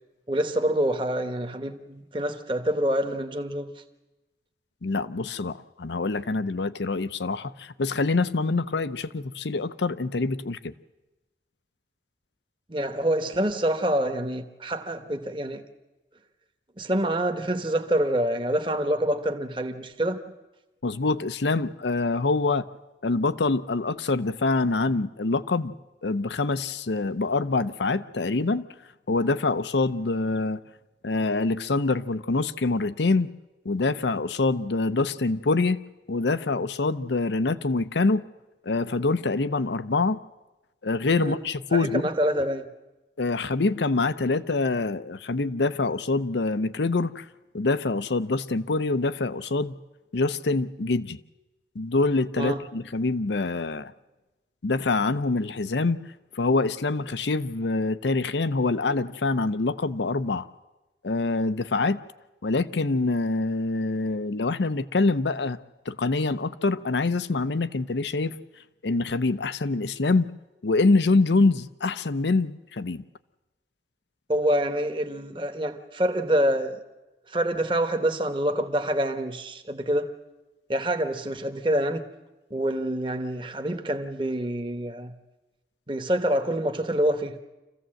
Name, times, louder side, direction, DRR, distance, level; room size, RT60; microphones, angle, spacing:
voice 1, 0.3-3.7 12.7-15.6 16.8-20.3 41.2-41.4 41.7-42.7 52.4-52.6 74.3-76.8 77.3-80.1 80.7-82.1 82.5-85.2 85.9-87.4, right 1 dB, 30° right, 1.1 m, -26 dB
voice 2, 4.8-10.7 20.8-22.7 23.0-25.8 26.0-28.7 29.1-30.6 31.0-33.3 33.6-35.8 36.1-38.2 38.6-40.2 40.8-42.0 43.2-47.3 47.5-49.8 50.1-51.2 51.7-53.9 54.6-56.0 56.4-60.5 61.0-62.0 62.4-65.6 65.9-68.4 68.8-70.3 70.6-73.0, left 3 dB, 85° left, 0.7 m, -25 dB
26.0 x 15.5 x 7.7 m
head